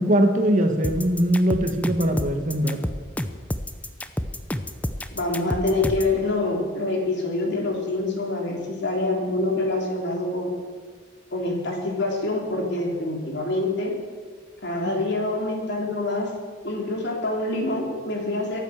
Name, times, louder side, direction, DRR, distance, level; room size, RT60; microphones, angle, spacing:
voice 1, 0.0-2.8 14.8-14.9, right 1 dB, 40° right, 5 dB, 1.5 m, -21 dB
sound 1, 0.8-6.1, left 1 dB, 5° left, 0.6 m, -29 dB
voice 2, 5.1-10.5 11.3-14.0 14.6-16.3 16.6-18.6, left 2 dB, 55° left, 0 dB, 3.6 m, -26 dB
22.5 x 8.9 x 6.6 m, 1.5 s
head